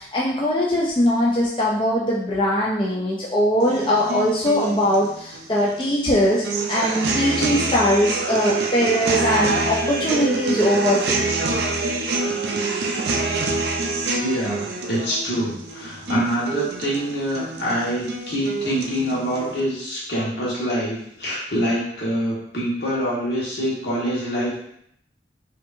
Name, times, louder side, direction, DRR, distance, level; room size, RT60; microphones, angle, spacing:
voice 1, 0.0-11.3, equal, 30° left, -5 dB, 0.5 m, -21 dB
sound 1, 3.6-19.6, right 3 dB, 75° right, 0.5 m, -26 dB
voice 2, 14.1-24.6, equal, 70° left, -6 dB, 1.5 m, -25 dB
5.0 x 2.7 x 2.6 m, 0.70 s
head